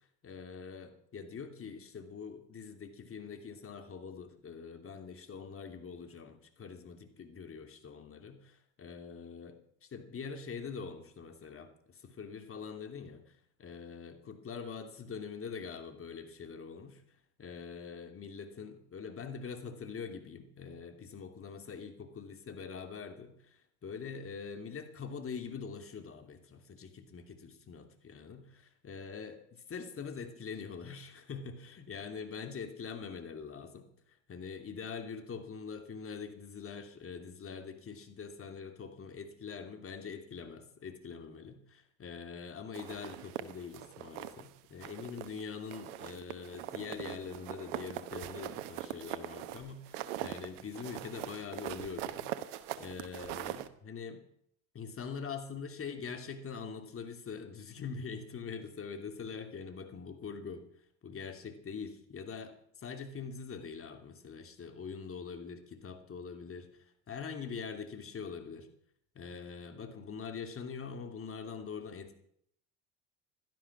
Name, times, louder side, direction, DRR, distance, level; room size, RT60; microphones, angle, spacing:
voice 1, 0.2-13.3 13.6-17.0 17.4-52.3 52.8-54.2 54.7-60.6 61.0-68.7 69.1-72.1, left 5 dB, 35° left, 6 dB, 2.8 m, -44 dB
sound 1, 42.7-44.5 44.8-45.4 45.7-53.7, right 13 dB, 75° right, 1.2 m, -42 dB
16.5 x 12.5 x 6.0 m, 0.68 s
hypercardioid pair, 70°, 37 cm